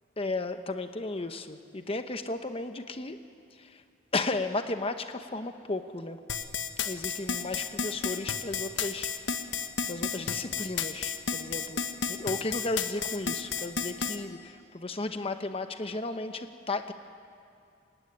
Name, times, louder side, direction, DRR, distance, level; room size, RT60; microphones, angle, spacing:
voice 1, 0.2-3.2 3.5-3.8 4.1-6.2 6.8-9.1 9.9-11.8 12.1-16.9, left 2 dB, 30° left, 8 dB, 0.9 m, -34 dB
sound 1, 6.3-14.2, left 6 dB, 85° left, 1.4 m, -31 dB
28.0 x 17.0 x 10.0 m, 2.5 s
head